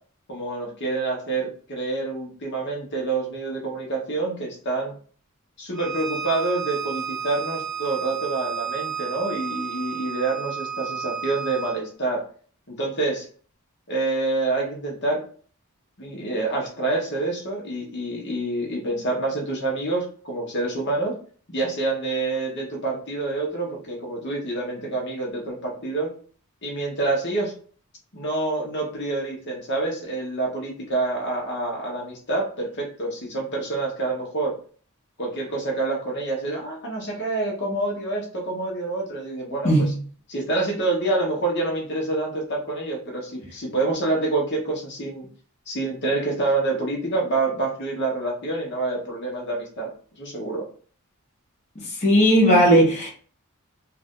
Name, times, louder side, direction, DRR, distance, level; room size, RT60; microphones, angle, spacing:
voice 1, 0.3-4.9 5.6-12.2 12.7-13.2 13.9-15.2 16.0-21.1 21.5-26.1 26.6-27.5 28.1-34.5 35.2-39.9 40.3-45.3 45.7-49.9 50.2-50.6, right 2 dB, 50° left, 1.1 m, -27 dB
Bowed string instrument, 5.7-11.8, right 7 dB, 15° right, 0.9 m, -32 dB
voice 2, 52.0-53.1, equal, 30° left, 1.1 m, -16 dB
3.3 x 2.5 x 3.7 m
head